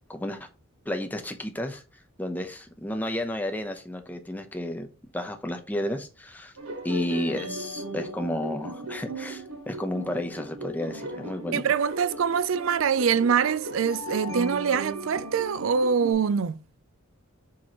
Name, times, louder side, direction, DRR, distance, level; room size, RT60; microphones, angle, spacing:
voice 1, 0.1-0.5 0.8-1.8 2.2-4.9 5.1-6.5 6.8-11.6, left 1 dB, 10° left, 0.8 m, -32 dB
sound 1, 6.6-16.1, right 2 dB, 90° right, 1.4 m, -37 dB
voice 2, 11.5-16.6, right 6 dB, 70° right, 0.4 m, -24 dB
7.3 x 4.6 x 3.0 m
head